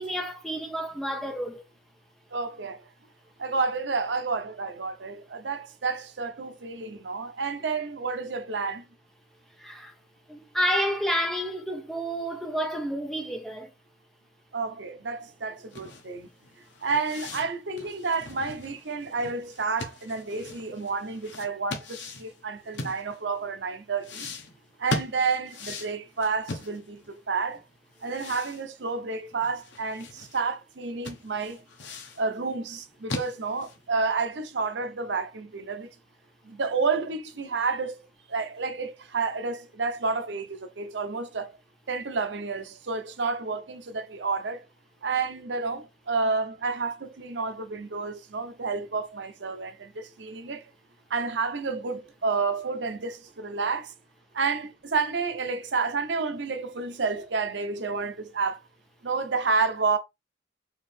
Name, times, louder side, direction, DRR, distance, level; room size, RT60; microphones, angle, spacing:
voice 1, 0.0-1.6 9.6-9.9 10.3-13.7, equal, ahead, 0.8 m, -30 dB
voice 2, 2.3-2.8 3.4-8.8 14.5-16.3 16.8-24.2 24.8-27.6 28.0-31.6 32.2-35.9 36.4-38.0 38.3-41.5 41.9-44.7 45.0-50.6 51.1-53.9 54.3-58.6 59.0-60.0, right 4 dB, 80° right, 0.8 m, -30 dB
sound 1, 15.7-23.4 24.0-27.2 27.5-27.6 28.0-30.4 30.7-30.8 31.0-32.2 32.7-33.9, left 2 dB, 90° left, 1.0 m, -39 dB
4.8 x 2.8 x 3.3 m
head